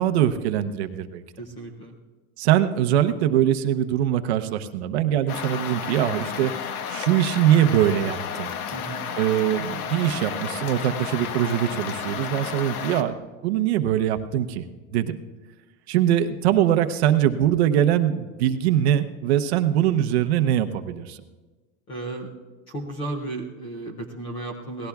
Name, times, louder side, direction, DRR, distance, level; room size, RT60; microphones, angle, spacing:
voice 1, 0.0-1.2 2.4-8.5 9.2-14.7 14.9-15.2 15.9-21.2, right 11 dB, 50° right, 8 dB, 0.8 m, -22 dB
voice 2, 1.4-2.0 8.7-9.0 21.9-22.3 22.7-24.9, right 2 dB, 15° left, 1 dB, 0.5 m, -34 dB
sound 1, 5.3-13.0, left 7 dB, 90° left, 1.2 m, -32 dB
27.0 x 18.5 x 2.3 m, 1.3 s
supercardioid pair, 175°, 42 cm